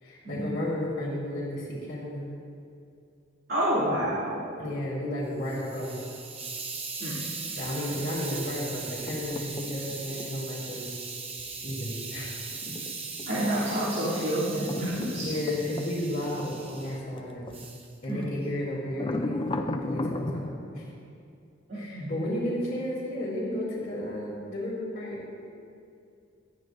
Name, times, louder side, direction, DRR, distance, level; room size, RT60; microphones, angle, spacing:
voice 1, 0.0-2.3 4.6-6.1 7.5-10.9 11.6-12.3 12.6-12.7 13.5-13.7 14.9-17.4 18.0-20.9 21.7-25.2, left 1 dB, 45° left, -10 dB, 2.9 m, -33 dB
voice 2, 3.5-4.5 7.0-7.2 13.3-15.3 18.1-18.2 21.7-22.2, right 1 dB, 45° right, -10 dB, 2.7 m, -29 dB
Hiss, 5.2-17.0 17.5-17.9, right 4 dB, 30° right, 0.9 m, -39 dB
sound 1, 9.0-10.4 12.5-17.6 18.0-18.2 18.9-20.5, left 2 dB, 25° left, 0.5 m, -36 dB
18.5 x 12.5 x 2.6 m, 2.5 s
head